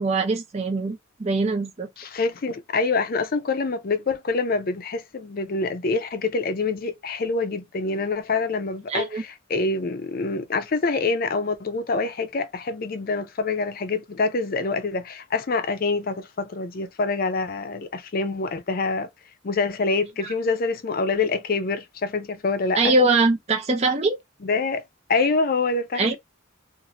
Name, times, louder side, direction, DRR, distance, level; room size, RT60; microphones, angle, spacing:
voice 1, 0.0-1.9 8.9-9.2 22.8-24.2 26.0-26.1, right 2 dB, 30° right, 0.6 m, -22 dB
voice 2, 2.0-19.1 19.4-22.9 24.4-24.8 25.1-26.2, left 3 dB, 45° left, 0.5 m, -26 dB
2.6 x 2.5 x 2.9 m
head